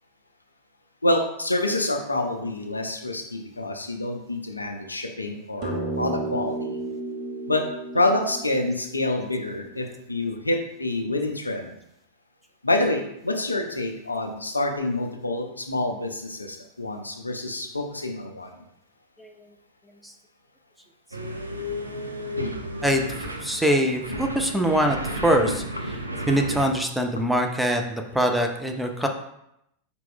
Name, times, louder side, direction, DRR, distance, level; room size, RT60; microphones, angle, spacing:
voice 1, 1.0-6.8 7.5-7.7 7.9-11.7 12.6-18.6, left 2 dB, 80° left, 3 dB, 0.4 m, -27 dB
sound 1, 5.6-10.3, right 2 dB, 40° right, 0.8 m, -33 dB
sound 2, 21.1-26.7, equal, 80° right, 0.4 m, -32 dB
voice 2, 22.8-25.6 26.3-29.1, equal, ahead, 3 dB, 0.4 m, -23 dB
4.4 x 2.2 x 3.6 m, 0.79 s
figure-of-eight pair, 90°, 0 cm